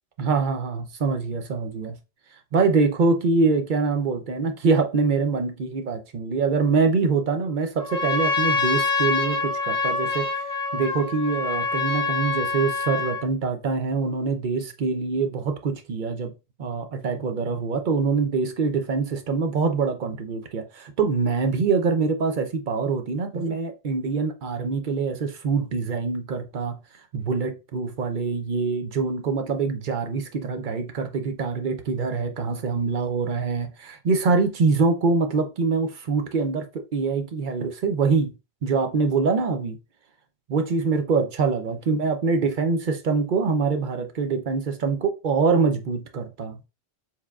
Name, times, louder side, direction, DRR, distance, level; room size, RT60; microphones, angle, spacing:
voice 1, 0.2-2.0 2.5-16.3 16.6-26.8 27.1-38.3 38.6-39.8 40.5-46.6, right 4 dB, 55° right, 0.7 m, -24 dB
Trumpet, 7.8-13.3, left 4 dB, 5° left, 0.9 m, -26 dB
4.6 x 3.5 x 2.3 m
omnidirectional pair, 1.1 m